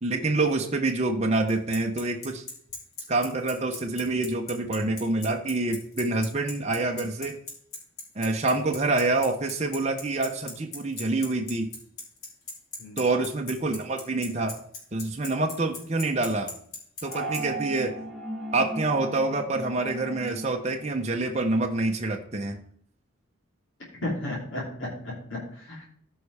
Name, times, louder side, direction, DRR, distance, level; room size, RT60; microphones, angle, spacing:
voice 1, 0.0-2.4 3.1-7.4 8.1-11.7 13.0-14.6 14.9-16.5 17.0-17.9 18.5-22.6, right 2 dB, 30° right, 2 dB, 0.8 m, -26 dB
Bicycle, 1.5-17.4, left 3 dB, 85° left, 3.5 m, -37 dB
sound 1, 17.0-21.7, right 1 dB, ahead, 1.5 m, -37 dB
voice 2, 24.0-25.9, left 1 dB, 65° left, -5 dB, 2.8 m, -34 dB
14.5 x 5.4 x 3.4 m, 0.63 s
head